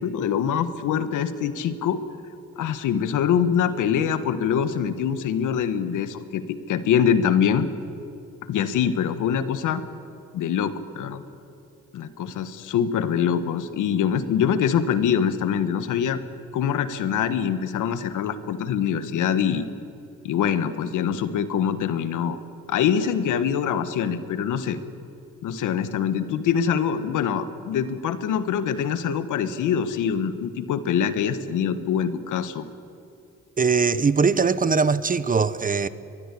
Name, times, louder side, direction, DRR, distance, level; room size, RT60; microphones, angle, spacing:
voice 1, 0.0-2.0 2.6-7.7 8.5-9.8 10.3-11.2 11.9-16.2 16.5-19.7 20.2-22.4 22.7-24.8 25.4-32.7, left 8 dB, 80° left, 1.5 m, -24 dB
voice 2, 33.6-35.9, right 5 dB, 30° right, 0.9 m, -21 dB
24.0 x 21.5 x 8.5 m
cardioid pair, 90°, 30 cm